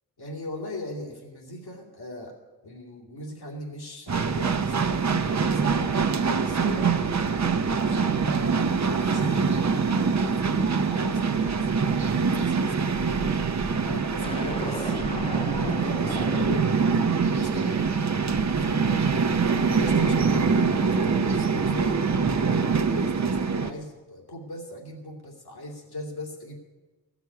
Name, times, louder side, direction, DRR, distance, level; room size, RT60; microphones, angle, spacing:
voice 1, 0.2-2.3 2.6-7.1 7.4-8.2 8.4-9.7 9.9-11.7 12.1-16.8 17.2-18.1 18.5-19.2 19.5-26.5, left 1 dB, 75° left, 0 dB, 2.6 m, -39 dB
sound 1, 4.1-23.7, right 5 dB, 45° right, 0.8 m, -24 dB
sound 2, 14.2-18.6, left 3 dB, 15° left, 0.4 m, -38 dB
15.0 x 6.1 x 9.3 m, 1.2 s
wide cardioid pair, 80°, 39 cm